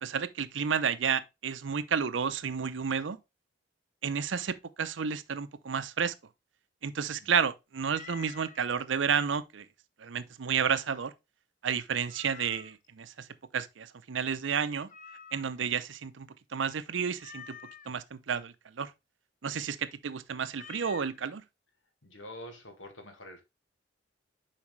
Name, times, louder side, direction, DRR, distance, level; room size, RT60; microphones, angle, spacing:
voice 1, 0.0-3.2 4.0-6.1 6.8-9.7 10.0-11.1 11.6-13.3 13.5-14.9 15.3-17.6 17.9-18.9 19.4-21.4, right 6 dB, 75° right, 0.6 m, -31 dB
Meow, 7.9-8.6 12.1-12.9 14.9-15.7 17.2-17.9 20.5-21.2, left 7 dB, 45° left, 0.5 m, -48 dB
voice 2, 22.0-23.4, left 1 dB, 90° left, 1.8 m, -46 dB
7.2 x 4.9 x 3.1 m
head